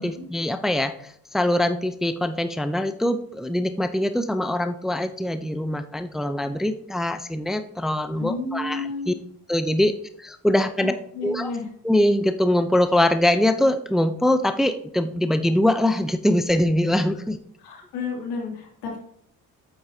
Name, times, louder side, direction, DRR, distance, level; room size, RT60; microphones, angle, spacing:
voice 1, 0.0-9.1 9.5-9.9 10.2-10.9 11.2-11.5 11.8-17.4, left 1 dB, ahead, 10 dB, 0.6 m, -23 dB
voice 2, 8.2-9.1 10.8-11.7 17.6-19.0, left 3 dB, 85° left, -1 dB, 2.8 m, -31 dB
8.8 x 7.9 x 2.8 m, 0.65 s
supercardioid pair, 65°, 39 cm